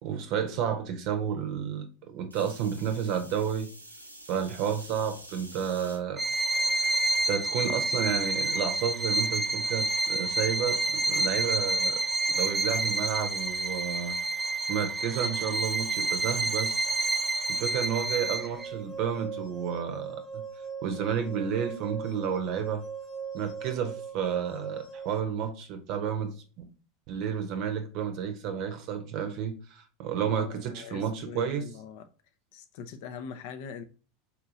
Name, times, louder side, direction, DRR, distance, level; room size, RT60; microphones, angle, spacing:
voice 1, 0.0-3.7 4.3-6.2 6.8-12.0 12.4-14.2 14.7-16.9 17.5-20.4 20.8-22.8 23.3-26.4 27.1-31.7, right 8 dB, 50° right, 0.7 m, -31 dB
sound 1, 2.3-6.0 6.7-7.1 8.4-8.5, right 1 dB, 90° right, 0.5 m, -48 dB
Bowed string instrument, 6.2-18.7, right 2 dB, 15° right, 0.4 m, -28 dB
sound 2, 18.2-25.2, right 6 dB, 30° left, 0.9 m, -40 dB
voice 2, 30.2-32.0 32.5-33.8, left 6 dB, 55° left, 0.6 m, -42 dB
4.2 x 2.7 x 2.5 m
figure-of-eight pair, 80°, 0 cm